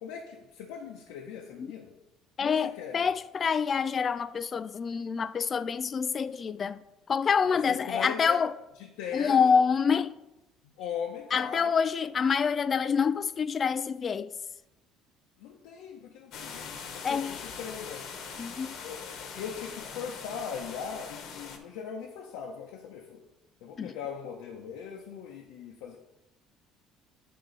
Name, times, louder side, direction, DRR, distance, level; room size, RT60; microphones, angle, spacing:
voice 1, 0.0-1.9 2.4-3.1 7.5-8.4 8.8-9.5 10.8-11.8 15.4-18.0 18.8-23.2 23.6-26.0, left 7 dB, 85° left, 0.8 m, -40 dB
voice 2, 2.4-6.8 7.1-8.5 9.1-10.1 11.3-14.3 17.0-17.4 18.4-18.7 23.8-23.9, left 6 dB, 35° left, 0.3 m, -27 dB
sound 1, 16.3-21.6, left 6 dB, 65° left, 1.1 m, -42 dB
8.7 x 3.7 x 4.0 m
cardioid pair, 110°, 0 cm